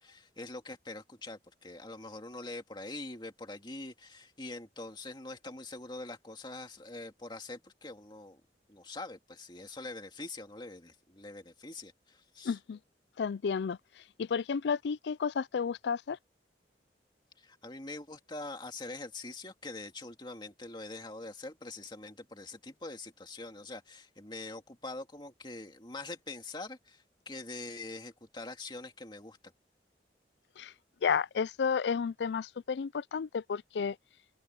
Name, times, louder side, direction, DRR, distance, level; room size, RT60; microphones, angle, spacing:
voice 1, 0.0-8.4 8.7-12.6 17.4-29.4, left 2 dB, 25° left, 2.3 m, -44 dB
voice 2, 12.4-12.8 13.2-13.8 14.2-16.2 30.6-30.7 31.0-34.0, left 6 dB, 75° left, 0.4 m, -31 dB
open air
head